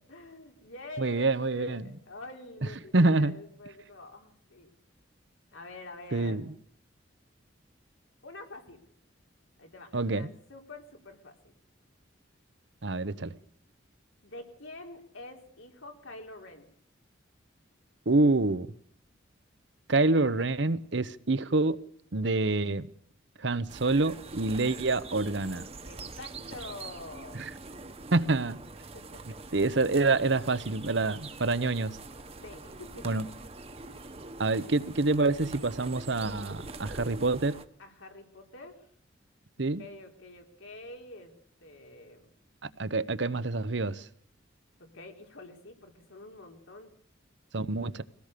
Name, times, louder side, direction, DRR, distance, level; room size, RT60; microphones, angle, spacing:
voice 1, 0.1-1.3 1.5-4.7 5.5-6.4 8.2-8.8 9.6-11.6 14.2-16.7 25.9-27.5 28.9-29.4 32.4-33.2 33.8-34.1 37.8-38.9 39.8-41.3 41.6-42.2 44.8-46.9, left 2 dB, 90° left, 4.1 m, -47 dB
voice 2, 1.0-2.0 2.9-3.3 6.1-6.5 9.9-10.3 12.8-13.4 18.1-18.7 19.9-21.8 22.1-22.9 23.4-25.6 28.1-28.6 29.5-32.0 33.0-33.2 34.4-37.6 39.6-39.8 42.6-44.0 47.5-48.0, right 3 dB, 65° right, 0.9 m, -27 dB
sound 1, 23.7-37.6, right 3 dB, 30° right, 1.2 m, -44 dB
23.0 x 17.5 x 6.8 m
head